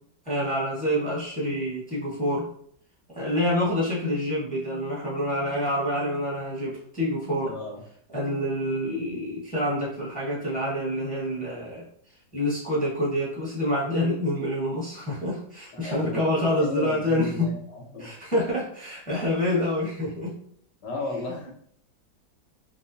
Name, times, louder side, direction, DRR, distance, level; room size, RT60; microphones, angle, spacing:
voice 1, 0.2-2.4 3.1-7.5 8.1-11.8 12.3-17.5 18.0-20.3, left 1 dB, 5° left, -6 dB, 0.8 m, -27 dB
voice 2, 7.4-7.8 15.7-18.1 20.8-21.5, left 2 dB, 65° left, -2 dB, 1.5 m, -35 dB
4.9 x 2.3 x 2.6 m, 0.63 s
omnidirectional pair, 2.0 m